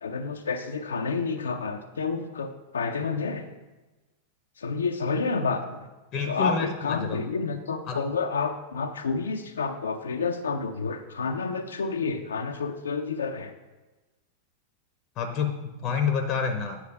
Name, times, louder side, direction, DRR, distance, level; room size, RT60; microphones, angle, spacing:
voice 1, 0.0-3.5 4.6-5.9 6.3-13.6, left 4 dB, 70° left, 5 dB, 0.5 m, -29 dB
voice 2, 6.1-7.2 7.9-8.0 15.2-16.8, left 6 dB, 35° left, 6 dB, 0.8 m, -28 dB
8.7 x 4.7 x 4.7 m, 1.1 s
figure-of-eight pair, 90°, 0 cm